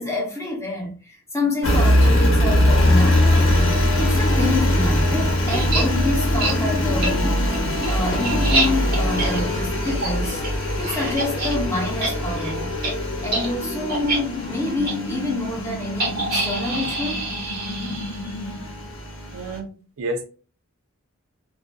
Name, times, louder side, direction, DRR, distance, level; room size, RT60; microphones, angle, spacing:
voice 1, 0.0-3.5 4.0-7.5 7.9-10.4 10.8-12.7 13.2-17.2, left 2 dB, 15° left, 0.7 m, -27 dB
Engine, 1.6-19.6, left 1 dB, 60° left, 0.8 m, -22 dB
sound 1, 4.0-18.9, left 4 dB, 85° left, 0.4 m, -33 dB
sound 2, 5.5-5.8 6.4-6.5 7.0-7.1 7.5-11.5 11.8-12.1 12.4-12.5 12.8-12.9 13.3-13.5 13.9-14.2 14.8-14.9 16.0-18.3, right 2 dB, 45° right, 0.9 m, -26 dB
voice 2, 19.3-19.7 20.0-20.3, right 1 dB, 70° right, 0.4 m, -29 dB
2.4 x 2.4 x 2.2 m
head